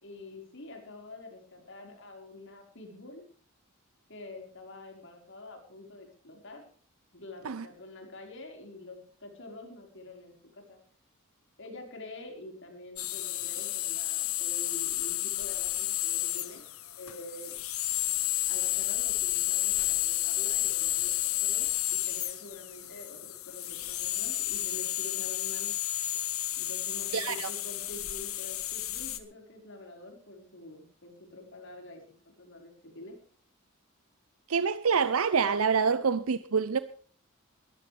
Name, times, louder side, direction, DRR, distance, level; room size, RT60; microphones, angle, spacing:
voice 1, 0.0-3.2 4.1-6.7 7.1-10.8 11.6-16.7 17.0-17.6 18.5-25.7 26.6-32.0 32.4-33.2, left 2 dB, 60° left, 4.8 m, -47 dB
sound 1, 13.0-29.2, left 15 dB, 85° left, 1.4 m, -31 dB
voice 2, 27.1-27.5 34.5-36.8, right 5 dB, 85° right, 0.7 m, -26 dB
21.0 x 14.0 x 3.4 m
head